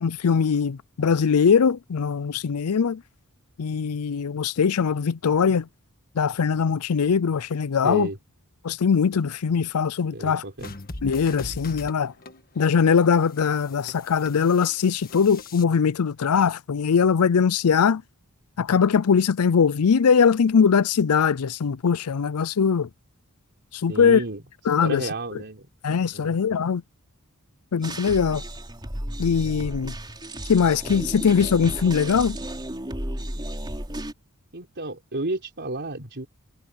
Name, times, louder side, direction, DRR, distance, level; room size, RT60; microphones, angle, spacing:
voice 1, 0.0-3.0 3.6-5.7 6.2-8.1 8.6-10.4 11.0-12.1 12.6-18.0 18.6-22.9 23.7-24.2 24.7-25.0 25.8-26.8 27.7-28.4 29.2-29.9 30.5-32.4, left 6 dB, 75° left, 0.5 m, -21 dB
voice 2, 7.8-8.2 10.1-10.7 23.9-24.4 24.8-25.7 26.1-26.4 34.5-36.3, right 2 dB, 50° right, 4.0 m, -32 dB
sound 1, 10.6-15.6, left 2 dB, 40° left, 1.6 m, -41 dB
sound 2, 27.8-34.1, right 1 dB, 20° right, 4.2 m, -33 dB
head